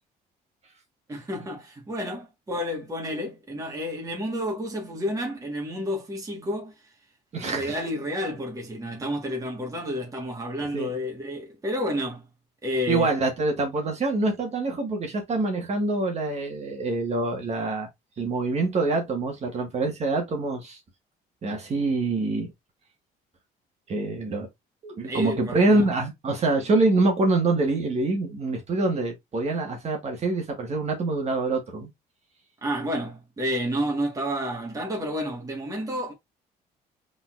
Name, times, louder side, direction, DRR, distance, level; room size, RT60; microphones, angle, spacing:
voice 1, 1.1-6.7 7.4-12.2 12.6-13.1 25.0-25.8 32.6-36.1, equal, 20° right, 1.5 m, -30 dB
voice 2, 7.3-7.8 10.6-10.9 12.9-17.9 18.2-20.8 21.4-22.5 23.9-24.5 24.8-31.9, right 2 dB, 40° right, 1.6 m, -25 dB
4.0 x 4.0 x 2.5 m
cardioid pair, 110°, 17 cm